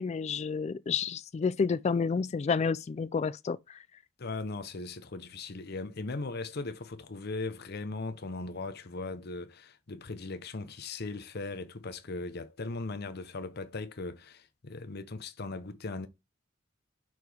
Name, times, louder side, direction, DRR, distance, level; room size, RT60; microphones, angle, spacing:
voice 1, 0.0-3.8, left 5 dB, 35° left, 0.3 m, -30 dB
voice 2, 4.2-16.1, left 3 dB, 55° left, 0.8 m, -38 dB
5.9 x 4.7 x 3.4 m
head